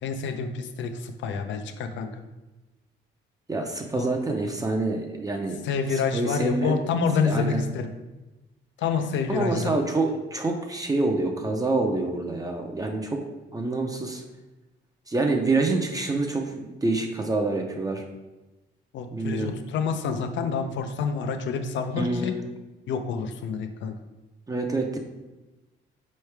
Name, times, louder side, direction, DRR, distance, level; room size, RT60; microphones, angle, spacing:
voice 1, 0.0-2.2 3.9-4.1 5.6-7.9 8.8-9.7 18.9-22.3 22.9-23.9, left 5 dB, 70° left, 8 dB, 0.5 m, -28 dB
voice 2, 3.5-5.6 6.1-6.8 7.2-7.6 9.3-13.2 13.5-14.2 15.1-18.0 19.1-19.5 22.0-22.4 24.5-25.0, right 2 dB, 20° right, 2 dB, 0.5 m, -26 dB
4.5 x 3.2 x 3.3 m, 1.1 s
cardioid pair, 90°, 20 cm